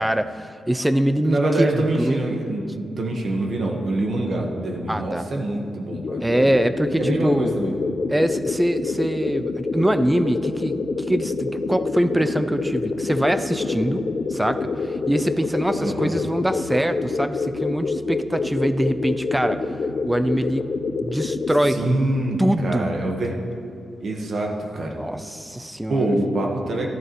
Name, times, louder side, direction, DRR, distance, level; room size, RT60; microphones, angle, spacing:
voice 1, 0.0-2.2 4.9-5.2 6.2-7.5 8.1-10.8 11.1-14.0 14.3-19.6 20.1-20.7 21.0-21.9 22.4-22.9 25.0-26.1, right 1 dB, 10° right, 10 dB, 0.4 m, -23 dB
voice 2, 1.2-6.2 7.0-7.7 15.8-16.1 21.7-23.4 24.0-25.0 25.9-26.9, right 1 dB, 55° right, 0 dB, 1.2 m, -25 dB
sound 1, 5.9-21.8, left 3 dB, 50° left, 0.6 m, -27 dB
13.5 x 11.0 x 3.0 m, 2.3 s
cardioid pair, 115°, 0 cm